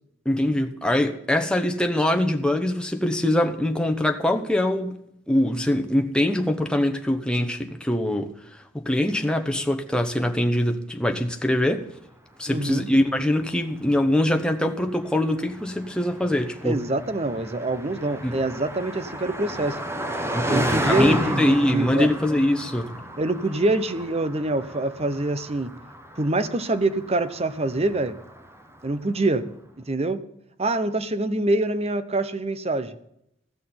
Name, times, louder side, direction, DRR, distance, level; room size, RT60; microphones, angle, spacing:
voice 1, 0.2-5.0 5.3-11.9 12.4-16.8 18.2-18.4 20.3-22.9, left 1 dB, 5° left, 5 dB, 1.1 m, -23 dB
Car passing by, 12.5-29.0, right 1 dB, 15° right, 1.3 m, -33 dB
voice 2, 12.5-12.9 16.6-19.8 20.5-22.1 23.2-25.7 26.2-28.2 28.8-29.5 29.8-30.2 30.6-33.0, right 2 dB, 30° right, 12 dB, 0.9 m, -25 dB
15.5 x 6.5 x 9.5 m, 0.76 s
head